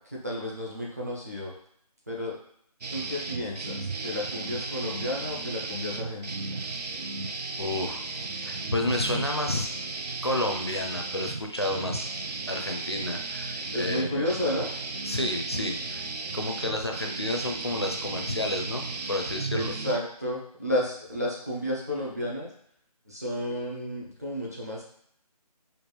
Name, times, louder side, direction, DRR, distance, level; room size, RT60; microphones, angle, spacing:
voice 1, 0.0-1.5 2.1-2.4 2.9-6.6 13.7-14.7 19.5-22.5 23.1-24.8, left 1 dB, 25° right, -4 dB, 0.6 m, -32 dB
sound 1, 2.8-20.0, right 3 dB, 85° right, 0.5 m, -35 dB
voice 2, 7.6-8.0 8.4-9.7 10.2-12.1 12.5-14.3 15.0-16.0 16.3-19.7, left 1 dB, 40° left, 3 dB, 0.4 m, -30 dB
4.4 x 2.3 x 3.3 m, 0.66 s
figure-of-eight pair, 180°, 20 cm